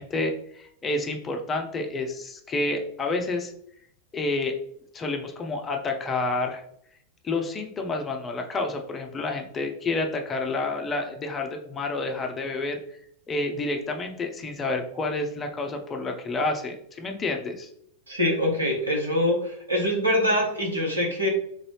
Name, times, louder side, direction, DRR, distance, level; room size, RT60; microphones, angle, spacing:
voice 1, 0.0-3.5 4.1-4.5 4.9-6.6 7.2-12.8 13.3-17.7, left 2 dB, 20° left, 3 dB, 0.5 m, -29 dB
voice 2, 18.1-21.3, left 1 dB, 80° right, -2 dB, 1.1 m, -24 dB
3.8 x 2.6 x 3.2 m, 0.68 s
figure-of-eight pair, 90°, 0 cm